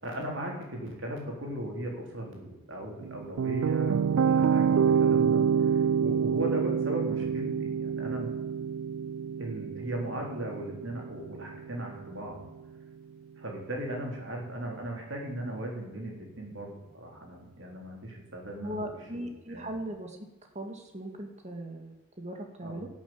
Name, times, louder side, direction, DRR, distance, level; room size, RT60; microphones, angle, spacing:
voice 1, 0.0-8.3 9.4-12.4 13.4-18.8 19.1-19.2 19.5-19.7 22.6-22.8, right 1 dB, 60° right, 0 dB, 3.7 m, -37 dB
sound 1, 3.0-12.1, right 7 dB, 80° right, 0.3 m, -27 dB
voice 2, 18.6-20.2 20.5-22.9, right 1 dB, 30° right, 4 dB, 2.0 m, -39 dB
12.0 x 7.4 x 8.6 m, 1.1 s
head